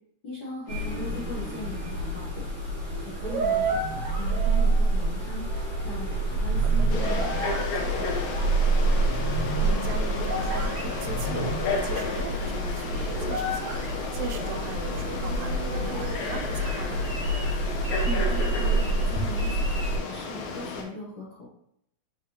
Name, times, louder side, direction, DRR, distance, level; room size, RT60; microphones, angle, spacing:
voice 1, 0.2-2.4 3.0-5.4 5.8-8.1 18.0-21.5, left 2 dB, 60° left, -8 dB, 1.1 m, -39 dB
sound 1, 0.7-12.2, left 4 dB, 75° left, 2.1 m, -41 dB
sound 2, 0.7-20.0, right 2 dB, 35° right, 1.5 m, -27 dB
Frog, 6.9-20.8, left 3 dB, 90° left, 2.1 m, -33 dB
voice 2, 9.6-17.1, right 4 dB, 80° right, 5 dB, 1.8 m, -38 dB
4.6 x 3.9 x 2.8 m, 0.72 s
omnidirectional pair, 3.3 m